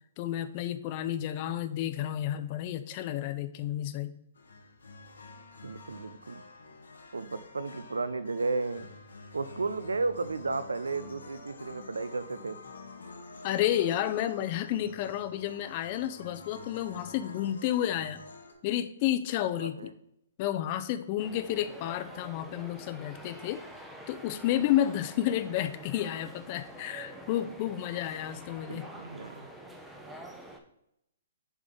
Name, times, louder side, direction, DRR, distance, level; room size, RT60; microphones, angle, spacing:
voice 1, 0.2-4.1 13.4-18.2 18.6-19.9 20.4-23.6 24.1-28.8, left 12 dB, 40° left, 11 dB, 0.5 m, -31 dB
sound 1, 4.4-18.5, left 3 dB, 75° left, 1.0 m, -49 dB
voice 2, 5.6-6.4 7.1-8.9 9.3-12.6 19.6-19.9 28.7-29.5, right 3 dB, 85° right, 15 dB, 0.4 m, -33 dB
sound 2, 21.2-30.6, right 1 dB, 5° right, 0.7 m, -47 dB
6.9 x 3.7 x 3.8 m, 0.81 s
hypercardioid pair, 130°, 0 cm